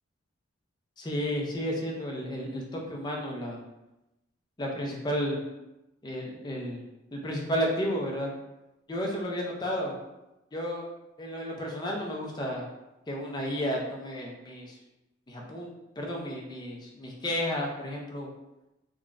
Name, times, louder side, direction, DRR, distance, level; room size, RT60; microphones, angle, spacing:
voice 1, 1.0-3.6 4.6-5.4 6.0-6.8 7.1-8.3 8.9-9.9 10.5-10.8 11.2-12.6 13.1-14.7 15.3-15.7 16.0-18.3, equal, 20° left, -1 dB, 0.4 m, -32 dB
3.6 x 2.1 x 2.4 m, 0.96 s
head